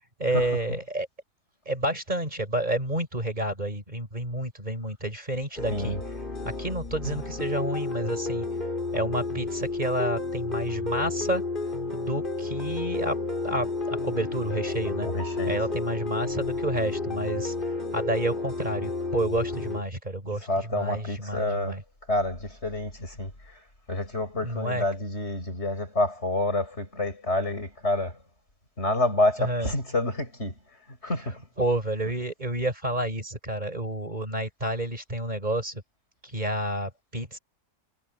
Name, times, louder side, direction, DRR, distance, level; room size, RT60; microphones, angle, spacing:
voice 1, 0.2-1.1 1.6-6.0 6.4-8.5 8.9-11.4 11.9-13.2 13.4-15.1 15.5-21.8 24.4-24.8 29.4-29.7 31.6-35.8 36.2-37.4, right 1 dB, 35° right, 4.8 m, -30 dB
sound 1, 5.6-19.8, left 3 dB, 45° left, 5.0 m, -31 dB
voice 2, 5.7-6.0 15.0-15.6 20.2-21.8 22.1-23.6 23.9-28.2 28.8-30.6 30.9-31.5, left 2 dB, 60° left, 7.4 m, -28 dB
omnidirectional pair, 1.3 m